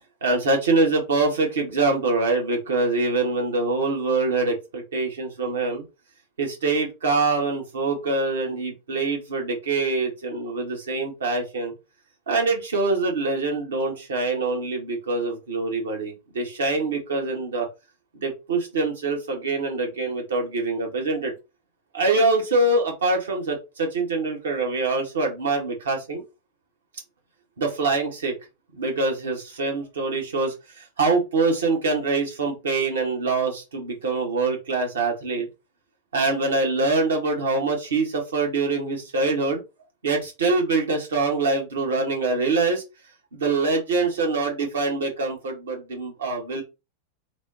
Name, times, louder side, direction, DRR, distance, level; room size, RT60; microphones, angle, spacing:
voice 1, 0.2-5.8 6.4-11.7 12.3-17.7 18.1-21.3 21.9-26.2 27.6-28.3 28.7-35.5 36.1-39.6 40.0-42.8 43.3-46.6, right 3 dB, 65° right, 1 dB, 1.0 m, -24 dB
3.3 x 2.1 x 2.6 m, 0.26 s
figure-of-eight pair, 90°, 0 cm